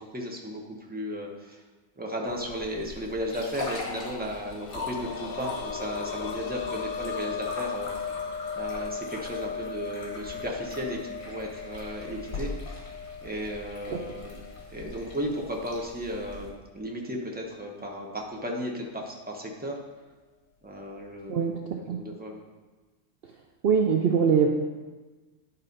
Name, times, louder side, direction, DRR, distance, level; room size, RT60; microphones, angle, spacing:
voice 1, 0.0-1.6 2.0-8.2 8.5-12.9 13.2-14.4 14.7-19.8 20.6-22.4, equal, 10° right, -1 dB, 1.0 m, -35 dB
sound 1, 2.3-16.5, left 2 dB, 55° left, 1.8 m, -41 dB
sound 2, 4.4-15.9 16.2-16.3 17.8-17.9, left 6 dB, 85° left, 1.0 m, -37 dB
voice 2, 21.3-22.0 23.6-24.5, right 6 dB, 60° right, 2 dB, 0.7 m, -23 dB
10.5 x 4.1 x 5.3 m, 1.3 s
omnidirectional pair, 1.3 m